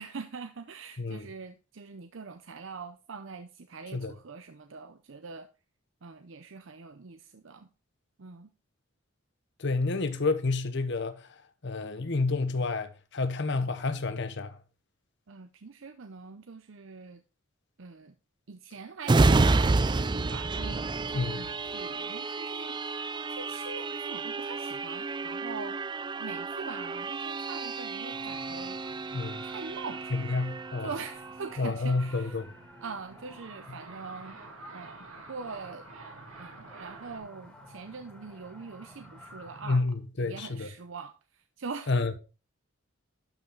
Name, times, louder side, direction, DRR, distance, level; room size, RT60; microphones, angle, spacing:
voice 1, 0.0-5.5 6.0-7.7 8.2-8.5 15.3-17.2 17.8-18.1 18.5-25.8 26.2-28.8 29.4-30.2 30.8-32.4 32.8-34.4 34.7-35.9 36.4-39.8 40.2-42.2, right 4 dB, 65° right, 0.6 m, -43 dB
voice 2, 9.6-11.2 11.6-14.5 21.1-21.5 29.1-29.4 30.1-30.9 31.6-32.5 39.7-40.7 41.9-42.2, left 3 dB, 60° left, 0.9 m, -29 dB
sound 1, 19.0-32.4 32.8-33.0, right 3 dB, 20° right, 0.4 m, -30 dB
sound 2, 28.1-39.8, equal, 5° left, 2.5 m, -51 dB
sound 3, 32.9-37.2, right 4 dB, 85° right, 1.8 m, -49 dB
12.0 x 5.7 x 3.8 m
head